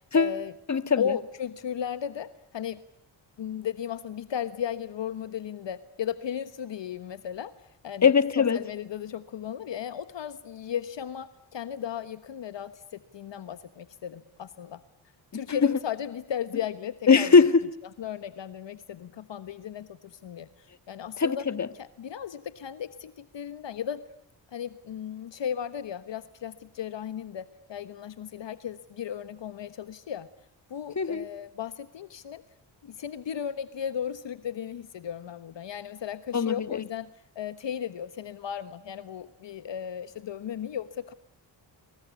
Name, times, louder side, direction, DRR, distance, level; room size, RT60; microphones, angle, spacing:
voice 1, 0.1-0.5 1.0-2.8 3.4-7.5 7.8-14.8 15.3-17.3 18.0-21.4 21.7-24.0 24.5-30.3 30.7-32.4 32.8-37.1 37.3-41.1, left 9 dB, 65° left, 13 dB, 1.3 m, -35 dB
voice 2, 0.7-1.1 8.0-8.6 17.1-17.7 21.2-21.7 31.0-31.3 36.3-36.8, left 5 dB, 35° left, 12 dB, 1.7 m, -21 dB
29.0 x 23.5 x 8.4 m, 0.73 s
cardioid pair, 55°, 47 cm